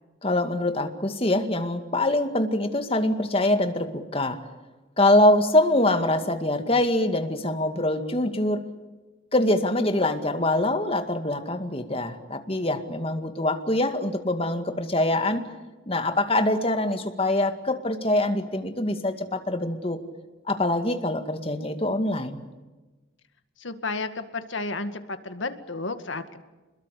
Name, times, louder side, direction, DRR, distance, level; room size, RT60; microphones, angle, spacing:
voice 1, 0.2-4.4 5.0-8.6 9.3-15.4 15.9-20.0 20.5-22.4, left 1 dB, 30° left, 7 dB, 2.1 m, -24 dB
voice 2, 23.6-26.4, left 3 dB, 75° left, 9 dB, 2.0 m, -32 dB
27.5 x 21.5 x 8.4 m, 1.2 s
head